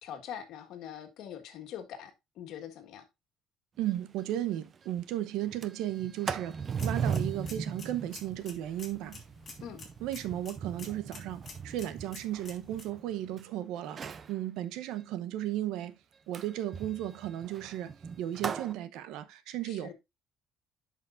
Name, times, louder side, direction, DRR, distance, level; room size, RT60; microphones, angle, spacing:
voice 1, 0.0-3.0 9.6-9.8 19.6-19.9, left 9 dB, 65° left, 1.7 m, -43 dB
voice 2, 3.8-9.2 10.0-14.0 14.3-16.0 16.3-17.9 18.2-19.9, right 13 dB, 80° right, 0.8 m, -35 dB
Sliding door, 3.9-4.0 4.3-4.4 4.7-5.0 5.4-13.4 13.8-14.3 16.3-18.7, right 6 dB, 30° right, 0.5 m, -38 dB
sound 1, 6.7-12.8, left 4 dB, 25° left, 2.3 m, -50 dB
10.5 x 5.8 x 2.5 m
cardioid pair, 150°, 0 cm